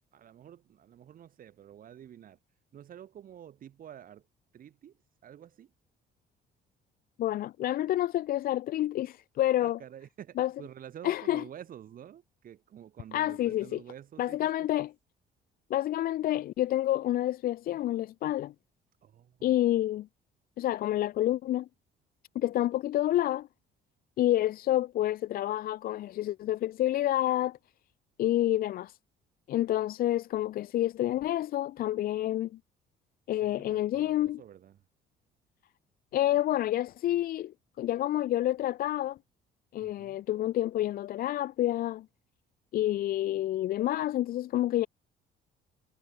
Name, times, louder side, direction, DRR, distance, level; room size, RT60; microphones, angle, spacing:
voice 1, 0.1-2.4 2.7-4.3 4.5-5.7 9.6-14.5 14.8-14.9 19.0-19.6 33.3-34.8 39.8-40.2, right 10 dB, 50° right, 6.9 m, -49 dB
voice 2, 7.2-9.8 10.4-10.5 11.0-11.4 13.1-13.8 14.2-14.9 15.7-18.5 19.4-20.1 20.6-21.7 22.3-23.5 24.2-27.6 28.2-29.0 29.5-32.5 33.3-34.4 36.1-39.2 39.7-42.1 42.7-44.9, left 13 dB, 55° left, 0.5 m, -28 dB
cardioid pair, 130°, 18 cm